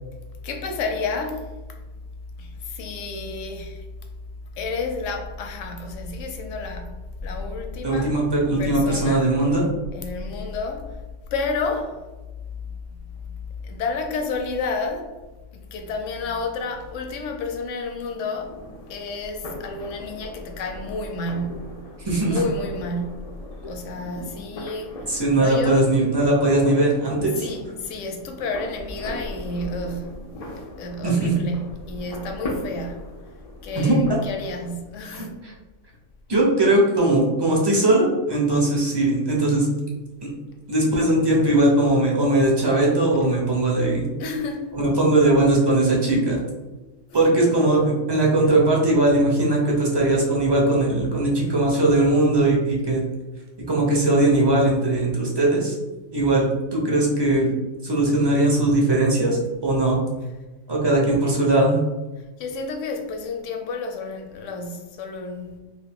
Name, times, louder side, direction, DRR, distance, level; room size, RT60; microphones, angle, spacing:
voice 1, 0.4-1.8 2.4-3.9 4.5-8.2 8.6-9.2 9.9-11.0 11.3-12.0 12.7-12.8 13.1-15.1 15.5-18.6 18.9-21.8 22.1-23.3 23.7-25.8 27.4-33.2 33.6-35.3 44.2-44.7 47.1-47.4 62.2-65.6, left 3 dB, 80° left, 0.9 m, -31 dB
voice 2, 7.8-9.7 22.0-22.4 25.1-27.4 31.0-31.3 33.8-34.0 35.1-35.5 36.3-39.7 40.2-40.3 40.7-44.0 44.7-46.4 47.1-53.0 53.7-55.8 56.1-57.6 57.8-60.0 60.7-61.8, right 2 dB, 30° right, 0.5 m, -20 dB
sound 1, 18.3-34.7, left 1 dB, 60° left, 0.4 m, -38 dB
2.6 x 2.5 x 3.4 m
omnidirectional pair, 1.3 m